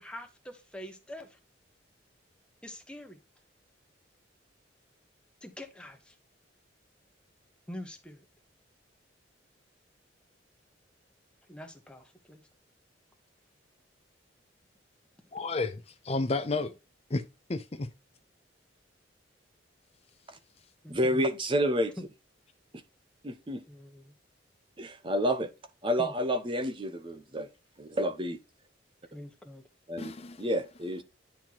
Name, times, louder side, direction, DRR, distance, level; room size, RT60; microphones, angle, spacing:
voice 1, 0.0-1.4 2.6-3.2 5.4-6.2 7.7-8.2 11.5-12.4 20.8-21.3 22.0-22.1 23.7-24.1 26.0-26.1 29.1-29.6, left 1 dB, 5° left, 1.2 m, -44 dB
voice 2, 15.3-16.7 17.1-17.2 17.5-17.9 30.0-30.4, left 3 dB, 35° left, 0.6 m, -31 dB
voice 3, 21.0-21.9 23.2-23.6 24.8-25.5 25.8-27.5 27.8-28.4 29.9-30.1 30.4-31.0, equal, 25° right, 0.7 m, -29 dB
10.0 x 4.5 x 3.0 m
head